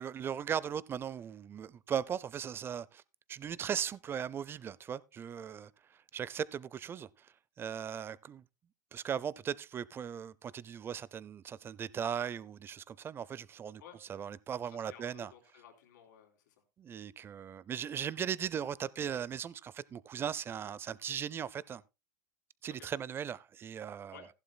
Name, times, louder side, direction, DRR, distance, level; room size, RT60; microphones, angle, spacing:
voice 1, 0.0-3.0 3.3-8.4 8.9-13.8 14.1-15.3 16.8-21.8 22.6-24.2, right 8 dB, 25° right, 0.5 m, -38 dB
voice 2, 14.6-16.5 22.8-22.9 24.1-24.3, left 9 dB, 85° left, 3.2 m, -55 dB
15.0 x 11.5 x 2.2 m
supercardioid pair, 130°, 10 cm